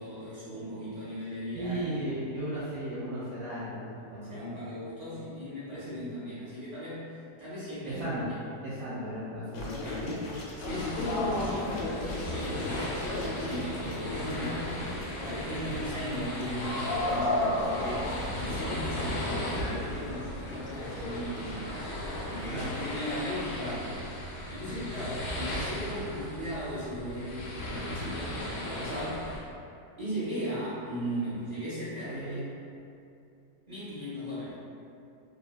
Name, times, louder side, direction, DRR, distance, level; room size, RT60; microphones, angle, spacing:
voice 1, 0.0-1.8 2.1-2.2 4.3-8.0 9.8-10.1 10.6-29.4 30.0-32.4 33.7-34.6, equal, 40° right, -11 dB, 0.6 m, -38 dB
voice 2, 1.5-4.4 5.9-6.0 7.8-8.2 8.6-10.0 15.6-15.8 22.5-22.8 24.7-24.8 32.0-32.4, right 1 dB, 70° right, -10 dB, 1.0 m, -36 dB
sound 1, 9.5-22.6, left 1 dB, 80° left, 1.2 m, -35 dB
sound 2, 10.7-29.4, left 1 dB, 65° left, 0.9 m, -37 dB
2.8 x 2.2 x 2.3 m, 2.6 s
omnidirectional pair, 1.8 m